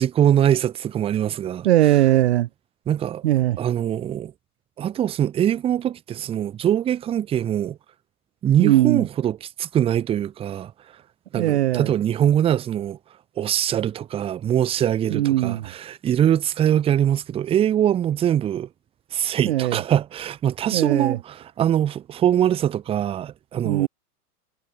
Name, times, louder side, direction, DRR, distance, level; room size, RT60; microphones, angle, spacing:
voice 1, 0.0-1.7 2.9-3.2 3.6-4.3 4.8-7.8 8.4-10.7 11.3-13.0 13.4-18.7 19.1-23.9, right 10 dB, 10° right, 0.8 m, -22 dB
voice 2, 1.6-2.5 3.2-3.6 8.6-9.0 11.3-11.9 15.1-15.7 19.4-19.8 20.7-21.2 23.6-23.9, right 14 dB, 45° right, 0.6 m, -19 dB
figure-of-eight pair, 105°, 46 cm